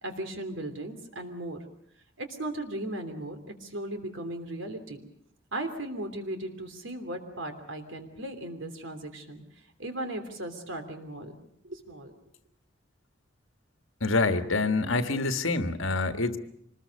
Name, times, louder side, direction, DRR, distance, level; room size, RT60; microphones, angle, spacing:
voice 1, 0.0-1.6 2.2-5.0 5.5-9.4 9.8-11.4 11.6-12.2, right 1 dB, 80° right, 6 dB, 3.2 m, -37 dB
voice 2, 14.0-16.4, left 3 dB, 85° left, 8 dB, 1.6 m, -26 dB
25.5 x 20.5 x 6.5 m, 0.71 s
head